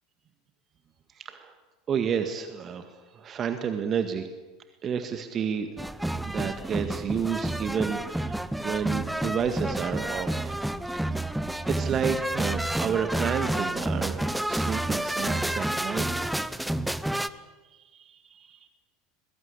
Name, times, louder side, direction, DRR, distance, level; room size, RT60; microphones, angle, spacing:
voice 1, 1.1-1.5 1.9-4.3 4.8-5.7 6.2-10.6 10.9-11.4 11.7-16.8 17.2-18.7, right 7 dB, 35° right, 8 dB, 1.9 m, -31 dB
sound 1, 5.8-17.3, right 1 dB, 5° right, 1.0 m, -29 dB
22.5 x 22.0 x 8.5 m, 1.2 s
figure-of-eight pair, 75°, 0 cm